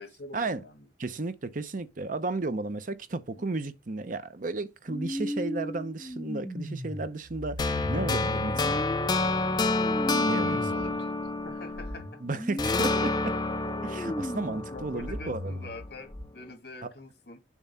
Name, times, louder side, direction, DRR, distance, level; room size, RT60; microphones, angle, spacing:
voice 1, 0.0-0.9 3.3-3.4 10.4-11.1 11.4-12.2 14.7-17.4, left 2 dB, 60° left, 2.3 m, -45 dB
voice 2, 1.0-8.9 10.3-10.9 12.2-13.3 13.8-15.6 16.8-16.9, right 3 dB, 45° right, 0.7 m, -34 dB
sound 1, 4.9-10.9 11.3-16.2, equal, 5° left, 2.0 m, -37 dB
sound 2, 7.6-12.1 12.6-15.7, left 3 dB, 25° left, 0.5 m, -29 dB
7.2 x 3.1 x 5.6 m
head